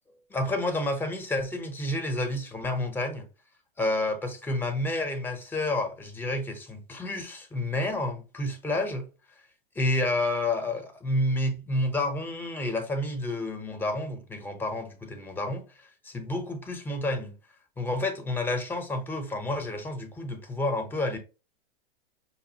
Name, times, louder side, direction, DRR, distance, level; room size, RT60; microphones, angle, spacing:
voice 1, 0.3-3.3 3.8-9.1 9.8-17.4 17.8-21.2, left 2 dB, 5° left, 0.5 m, -30 dB
5.4 x 2.4 x 2.7 m
supercardioid pair, 140°, 29 cm